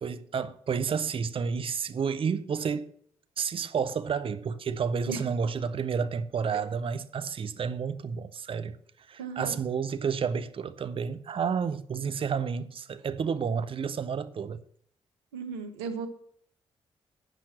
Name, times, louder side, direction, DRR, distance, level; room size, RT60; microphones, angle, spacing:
voice 1, 0.0-2.9 3.4-8.8 9.1-14.6, right 6 dB, 45° right, 0.6 m, -30 dB
voice 2, 9.2-9.6 15.3-16.1, right 5 dB, 85° right, 0.8 m, -36 dB
9.1 x 5.9 x 7.5 m
hypercardioid pair, 40°, 13 cm